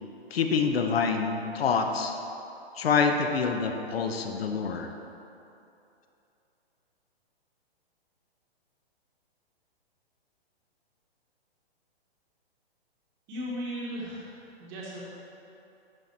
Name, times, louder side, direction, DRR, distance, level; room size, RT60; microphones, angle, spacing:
voice 1, 0.3-2.2 2.8-4.9, left 5 dB, 70° left, 5 dB, 0.8 m, -26 dB
voice 2, 13.3-14.3 14.6-15.0, equal, 20° right, -5 dB, 1.1 m, -36 dB
11.5 x 4.0 x 4.3 m, 2.8 s
hypercardioid pair, 170°, 32 cm